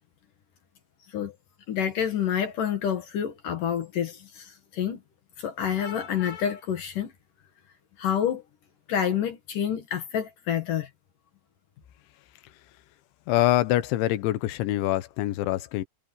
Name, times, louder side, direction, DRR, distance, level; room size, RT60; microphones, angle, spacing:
voice 1, 1.7-5.0 5.4-7.1 8.0-8.4 8.9-10.9, left 9 dB, 55° left, 2.8 m, -28 dB
voice 2, 13.3-15.9, left 15 dB, 85° left, 3.5 m, -25 dB
omnidirectional pair, 5.2 m